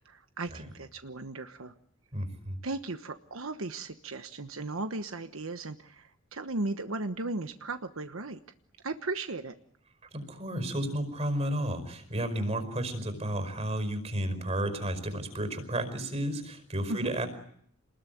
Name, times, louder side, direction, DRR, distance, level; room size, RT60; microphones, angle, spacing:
voice 1, 0.0-1.7 2.6-8.4 8.8-9.5 16.9-17.1, right 2 dB, 85° right, 8 dB, 1.2 m, -36 dB
voice 2, 2.1-2.6 10.1-17.3, right 1 dB, 30° right, 9 dB, 5.1 m, -32 dB
27.5 x 21.0 x 9.3 m, 0.67 s
head